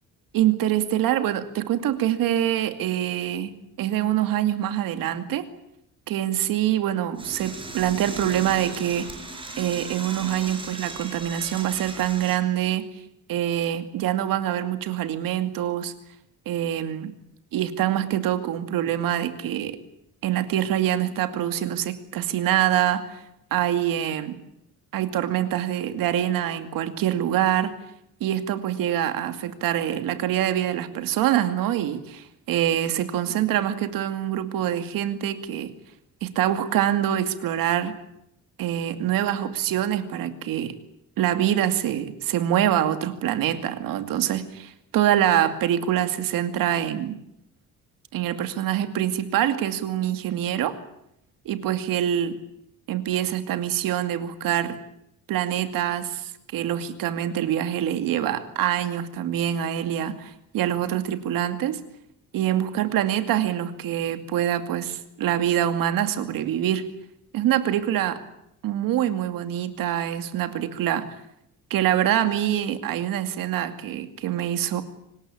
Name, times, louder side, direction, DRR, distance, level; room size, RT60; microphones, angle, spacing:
voice 1, 0.3-5.5 6.1-9.1 9.6-12.9 13.3-15.9 16.5-17.1 17.5-19.8 20.2-23.2 23.5-24.4 24.9-27.7 28.2-35.7 36.2-37.9 38.6-40.7 41.2-47.2 48.1-50.8 51.5-52.4 52.9-54.8 55.3-61.8 62.3-66.9 67.3-68.2 68.6-71.2 71.7-74.8, right 11 dB, 85° right, 9 dB, 2.4 m, -25 dB
Door / Toilet flush, 7.2-12.4, right 3 dB, 15° right, 5.9 m, -37 dB
25.0 x 19.5 x 8.8 m, 0.79 s
cardioid pair, 150°, 33 cm